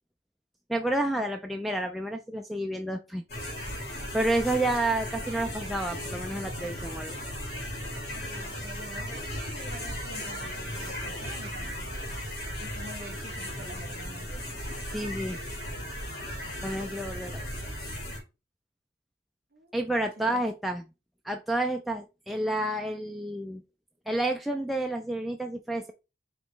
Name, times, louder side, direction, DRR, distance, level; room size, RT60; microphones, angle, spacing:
voice 1, 0.7-3.2 3.8-7.2 14.9-15.4 16.6-17.5 19.7-20.8 21.2-23.6 24.1-25.9, right 1 dB, ahead, 0.3 m, -30 dB
sound 1, 3.3-18.2, equal, 60° left, 1.8 m, -36 dB
voice 2, 8.2-11.9 12.6-14.6 19.5-20.5, right 1 dB, 55° right, 1.1 m, -47 dB
5.1 x 3.1 x 3.2 m
head